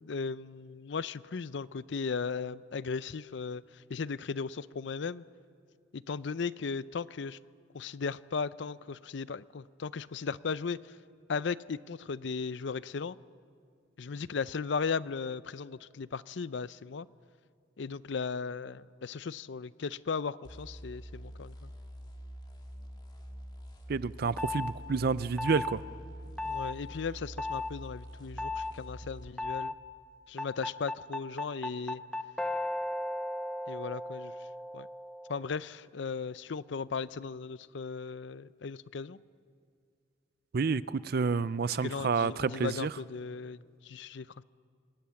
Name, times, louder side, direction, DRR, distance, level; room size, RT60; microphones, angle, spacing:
voice 1, 0.0-5.2 5.9-7.4 7.7-11.0 11.3-13.2 14.0-17.1 17.8-21.7 26.4-29.7 30.3-32.0 33.7-34.3 34.7-34.9 35.3-39.2 41.8-44.4, left 5 dB, 65° left, 17 dB, 0.5 m, -36 dB
sound 1, 20.4-29.4, equal, 25° left, 2.2 m, -46 dB
voice 2, 23.9-25.8 40.5-42.9, right 5 dB, 55° right, 17 dB, 0.5 m, -29 dB
sound 2, 24.4-24.7 25.4-25.8 26.4-26.8 27.4-27.7 28.4-28.7 29.4-29.8 30.4-35.5, left 2 dB, 5° left, 0.6 m, -35 dB
24.5 x 19.0 x 7.1 m, 2.2 s
head